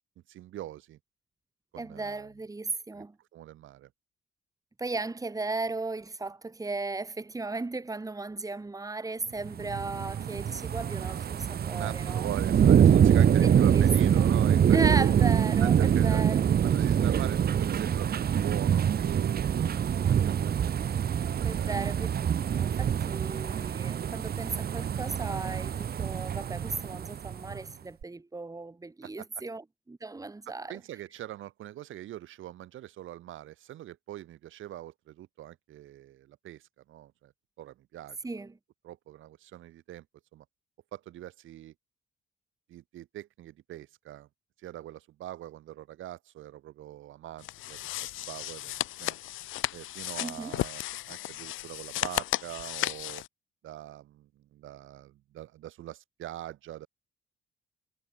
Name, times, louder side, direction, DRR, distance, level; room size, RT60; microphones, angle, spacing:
voice 1, 0.3-1.0 1.7-2.3 2.9-3.0 3.3-3.9 11.7-14.8 15.6-16.2 16.6-19.8 20.1-20.5 21.4-21.8 29.0-29.3 30.5-37.3 37.6-38.4 38.8-40.0 40.3-40.4 40.9-41.7 42.7-44.3 44.6-47.8 48.2-49.2 49.7-53.2 53.6-56.9, right 13 dB, 80° right, 6.2 m, -42 dB
voice 2, 1.8-3.1 4.8-12.3 13.4-13.9 14.2-14.3 14.7-16.4 21.4-22.1 22.5-30.8 38.2-38.5 50.2-50.6, right 3 dB, 15° right, 2.2 m, -36 dB
sound 1, 9.4-27.6 28.0-28.1, right 8 dB, 50° right, 1.3 m, -25 dB
sound 2, 47.4-53.3, left 16 dB, 90° left, 1.5 m, -34 dB
cardioid pair, 90°, 20 cm